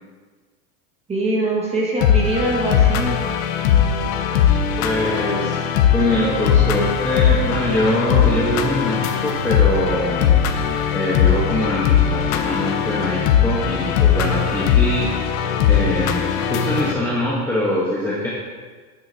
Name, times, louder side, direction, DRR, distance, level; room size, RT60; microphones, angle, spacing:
voice 1, 1.1-3.2 10.6-10.8, right 1 dB, 15° right, -2 dB, 1.7 m, -23 dB
sound 1, 2.0-16.9, left 8 dB, 60° left, 1.0 m, -19 dB
voice 2, 4.8-5.6 5.9-10.4 10.9-15.1 15.7-18.3, left 1 dB, 5° left, -7 dB, 1.1 m, -23 dB
11.5 x 9.6 x 2.8 m, 1.4 s
supercardioid pair, 160°, 45 cm